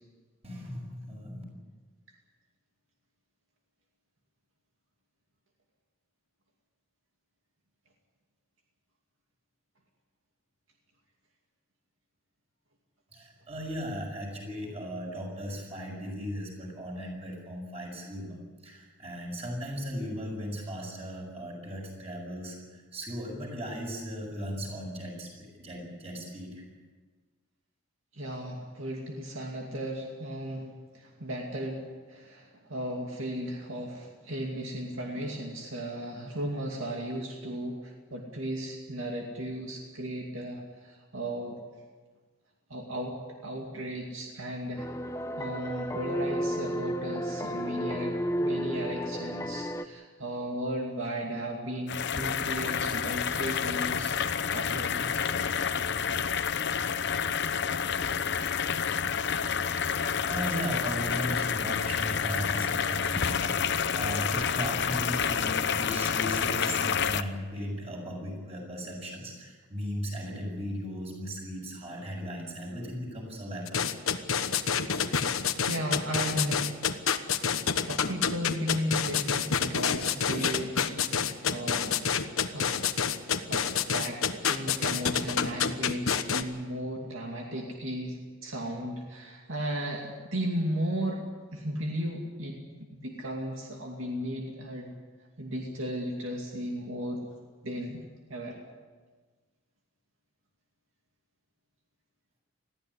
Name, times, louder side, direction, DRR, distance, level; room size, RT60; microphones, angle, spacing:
voice 1, 0.4-1.4 13.1-18.4 18.6-26.6 59.8-73.8, equal, 30° right, 0 dB, 6.6 m, -37 dB
voice 2, 28.1-30.7 30.9-41.6 42.7-43.2 43.4-44.9 45.4-54.2 54.5-55.2 75.6-76.8 77.8-82.0 82.5-82.7 83.3-83.7 83.9-91.2 91.5-92.6 92.9-94.9 95.4-97.2 97.6-98.0 98.3-98.6, equal, 70° right, 0 dB, 2.5 m, -35 dB
sound 1, 44.8-49.8, equal, 15° left, 0.8 m, -32 dB
sound 2, 51.9-67.2, left 7 dB, 55° left, 0.8 m, -29 dB
sound 3, 73.7-86.4, left 7 dB, 85° left, 1.2 m, -27 dB
21.0 x 15.0 x 9.9 m, 1.4 s
head